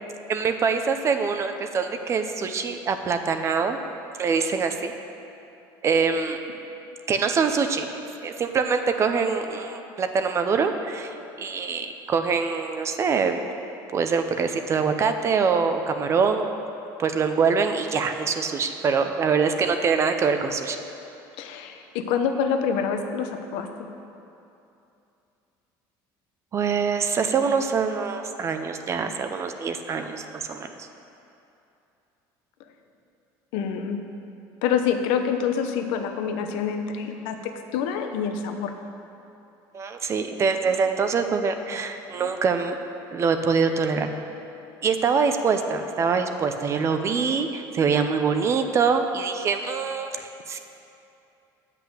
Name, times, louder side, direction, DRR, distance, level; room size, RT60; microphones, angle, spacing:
voice 1, 0.3-3.8 4.2-4.9 5.8-6.4 7.1-7.9 8.2-13.5 13.9-16.5 17.0-20.8 26.5-30.9 39.7-42.8 43.1-44.1 44.8-50.6, right 5 dB, 30° right, 7 dB, 0.6 m, -24 dB
voice 2, 21.4-23.9 33.5-34.0 34.6-38.7, left 7 dB, 85° left, 6 dB, 0.8 m, -26 dB
8.1 x 5.8 x 8.0 m, 2.8 s
cardioid pair, 135°, 9 cm